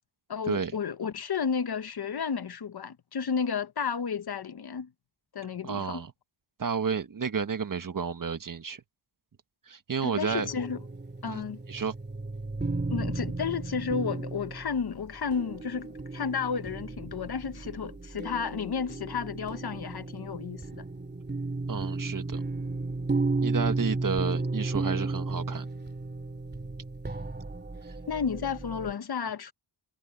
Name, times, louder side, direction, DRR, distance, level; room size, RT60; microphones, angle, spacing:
voice 1, 0.3-4.9 5.3-6.0 10.0-10.8 11.2-11.6 12.9-20.8 28.1-29.5, left 6 dB, 50° left, 1.2 m, -32 dB
voice 2, 5.6-6.1 6.6-8.8 9.7-10.5 11.2-11.4 11.7-11.9 21.7-22.4 23.4-25.7, right 6 dB, 40° right, 1.5 m, -31 dB
sound 1, 10.3-28.9, right 3 dB, 20° right, 2.9 m, -34 dB
wide cardioid pair, 130°, 47 cm